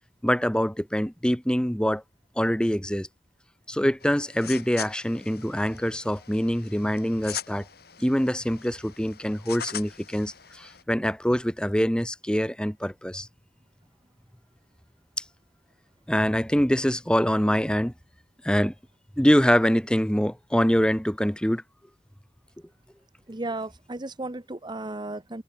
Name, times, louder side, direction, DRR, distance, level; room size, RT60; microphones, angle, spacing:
voice 1, 0.2-2.0 2.4-3.1 3.7-7.6 8.0-13.3 16.1-17.9 18.4-18.7 19.2-21.6, equal, 5° left, 1.2 m, -24 dB
sound 1, 4.0-10.8, left 9 dB, 60° left, 3.5 m, -41 dB
voice 2, 23.3-25.4, right 2 dB, 25° right, 1.0 m, -34 dB
head